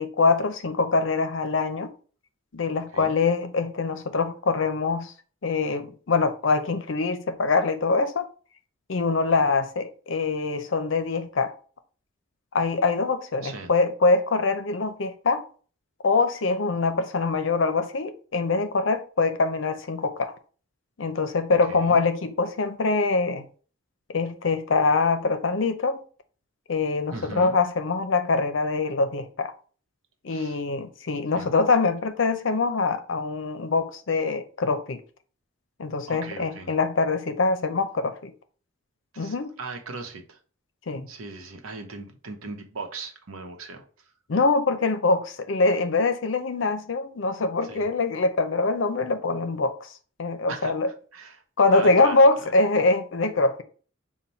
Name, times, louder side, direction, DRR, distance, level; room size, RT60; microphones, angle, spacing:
voice 1, 0.0-1.9 2.5-5.1 5.4-8.3 8.9-11.5 12.5-15.4 16.0-20.3 21.0-23.5 24.1-26.0 26.7-29.5 30.2-35.0 35.8-38.3 39.2-39.5 40.9-41.1 44.3-49.9 50.2-50.9 51.6-53.6, left 3 dB, 60° left, 0.6 m, -24 dB
voice 2, 21.7-22.0 27.1-27.6 30.3-30.6 31.3-31.5 36.1-36.7 39.1-40.4 41.1-43.8 47.6-47.9 50.5-50.7 51.1-51.4 51.7-52.5, right 3 dB, 85° right, 0.9 m, -38 dB
5.4 x 2.2 x 4.3 m
head